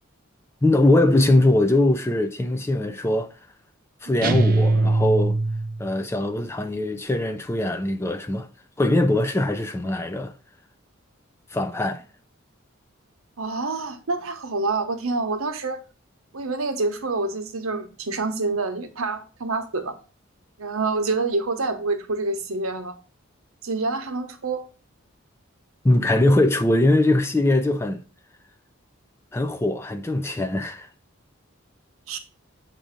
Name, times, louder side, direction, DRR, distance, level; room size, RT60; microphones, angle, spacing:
voice 1, 0.6-3.3 4.0-5.4 5.8-8.5 8.8-10.3 11.5-12.0 25.8-28.0 29.3-30.9, left 1 dB, 10° left, 0.3 m, -21 dB
sound 1, 4.2-5.9, right 2 dB, 40° right, 0.6 m, -21 dB
voice 2, 13.4-15.8 16.3-19.9 20.6-22.9 23.6-24.6 32.1-32.2, right 3 dB, 80° right, 0.9 m, -27 dB
7.4 x 2.6 x 5.0 m
head